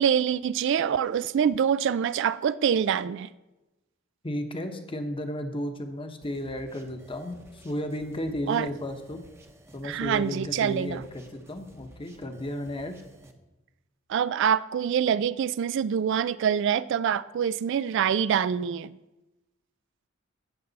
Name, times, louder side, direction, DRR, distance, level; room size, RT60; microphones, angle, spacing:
voice 1, 0.0-3.3 8.5-8.7 9.8-11.0 14.1-19.0, right 8 dB, 65° right, 16 dB, 0.3 m, -25 dB
voice 2, 4.2-9.2 9.7-13.0, left 1 dB, 25° left, 6 dB, 1.0 m, -34 dB
sound 1, 6.2-13.3, equal, 15° right, 0.9 m, -53 dB
16.0 x 6.7 x 4.0 m, 1.0 s
head